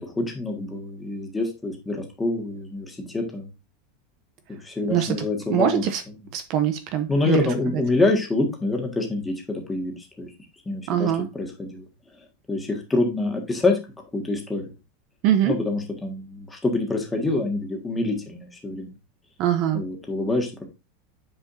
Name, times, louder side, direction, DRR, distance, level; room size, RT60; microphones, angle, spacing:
voice 1, 0.0-3.5 4.6-5.9 7.1-10.3 10.6-11.8 12.5-13.8 14.1-14.6 15.4-18.9 19.7-20.6, left 2 dB, 10° left, 1.5 m, -26 dB
voice 2, 5.5-6.0 6.3-7.4 10.9-11.3 15.2-15.5 19.4-19.8, right 10 dB, 40° right, 0.7 m, -22 dB
8.5 x 4.9 x 2.6 m
supercardioid pair, 165°, 0 cm